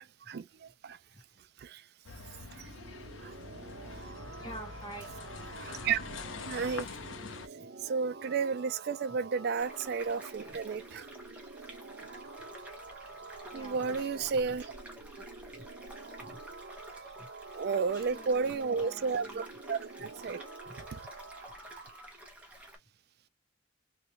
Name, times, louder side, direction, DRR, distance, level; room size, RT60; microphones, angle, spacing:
sound 1, 2.0-7.5, left 4 dB, 85° left, 0.7 m, -44 dB
sound 2, 2.2-22.1, right 3 dB, 85° right, 0.9 m, -48 dB
voice 1, 4.2-5.4 5.7-5.8 7.5-7.7 9.1-9.2 10.1-10.6 13.5-14.6 15.2-15.3 16.2-16.4 17.0-17.3 17.6-19.5 20.0-20.1 20.7-20.9, right 1 dB, 20° left, 1.8 m, -49 dB
voice 2, 5.6-6.0 6.5-6.9 7.8-11.1 13.5-14.6 17.5-20.4, right 5 dB, 55° right, 0.4 m, -32 dB
sound 3, 9.6-22.8, right 1 dB, 5° right, 1.1 m, -51 dB
3.2 x 3.1 x 2.9 m
head